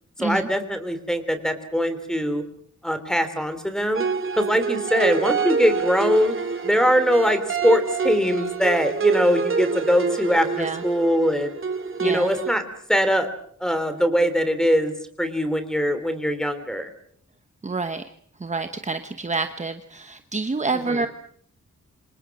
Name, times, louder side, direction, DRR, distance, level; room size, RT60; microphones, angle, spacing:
voice 1, 0.2-2.4 2.8-4.0 4.3-6.3 6.6-11.5 12.0-12.6 12.9-13.3 13.6-14.9 15.2-16.9 20.7-21.0, equal, ahead, 10 dB, 3.4 m, -22 dB
sound 1, 3.9-12.6, right 5 dB, 45° right, 2.3 m, -27 dB
voice 2, 12.0-12.3 17.6-18.0 18.4-21.1, right 3 dB, 25° right, 8 dB, 1.1 m, -28 dB
28.5 x 26.5 x 6.2 m, 0.62 s
wide cardioid pair, 165°, 29 cm